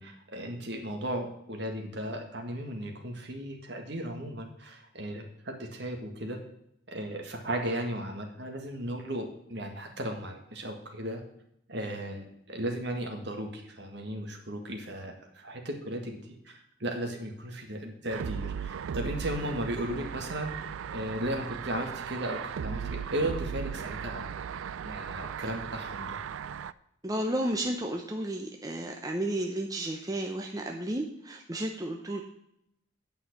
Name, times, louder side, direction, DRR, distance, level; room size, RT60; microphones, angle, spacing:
voice 1, 0.0-6.4 6.9-11.2 11.7-24.3 24.8-26.2, right 1 dB, 60° right, 3 dB, 1.8 m, -36 dB
sound 1, 18.1-26.7, right 7 dB, 90° right, 0.4 m, -37 dB
voice 2, 27.0-32.2, right 1 dB, 20° right, 2 dB, 0.7 m, -32 dB
8.9 x 5.6 x 8.1 m, 0.76 s
head